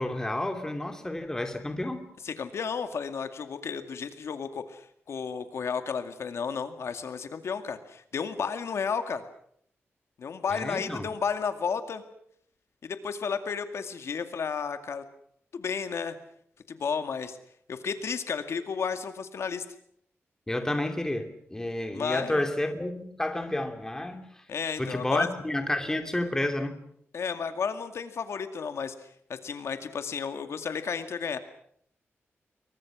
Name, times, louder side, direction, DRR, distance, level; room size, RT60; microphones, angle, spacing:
voice 1, 0.0-2.0 10.5-11.1 20.5-24.4 24.8-26.8, left 1 dB, 10° left, 6 dB, 2.9 m, -30 dB
voice 2, 2.2-9.2 10.2-12.0 12.8-15.0 15.5-16.2 16.7-17.4 17.7-19.6 21.9-22.4 24.5-25.3 27.1-31.4, left 6 dB, 75° left, 8 dB, 2.2 m, -32 dB
28.0 x 23.5 x 6.3 m, 0.68 s
wide cardioid pair, 145°, 5 cm